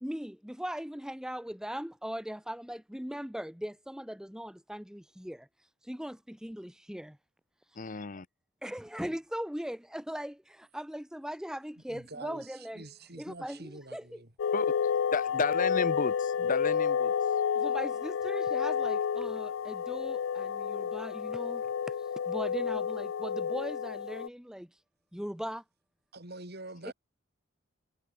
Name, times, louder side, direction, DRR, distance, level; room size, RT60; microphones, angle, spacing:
voice 1, 0.0-5.5 5.8-7.2 8.6-12.9 13.2-14.2 17.5-21.9 22.3-24.7 25.1-25.6 26.8-26.9, equal, 5° right, 1.2 m, -39 dB
voice 2, 7.8-8.3 14.5-14.7 15.1-17.1, left 4 dB, 40° left, 0.8 m, -32 dB
voice 3, 11.9-14.3 26.1-26.9, right 2 dB, 50° right, 6.0 m, -46 dB
sound 1, 14.4-24.3, left 7 dB, 70° left, 0.4 m, -30 dB
head